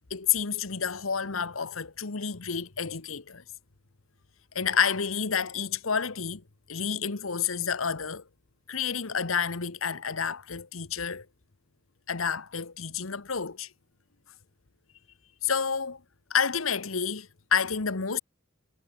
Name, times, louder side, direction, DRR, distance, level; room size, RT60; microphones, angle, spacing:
voice 1, 0.1-3.4 4.5-6.4 6.7-8.2 8.7-11.3 12.1-13.7 15.4-16.0 16.3-18.2, left 6 dB, 80° left, 1.3 m, -29 dB
head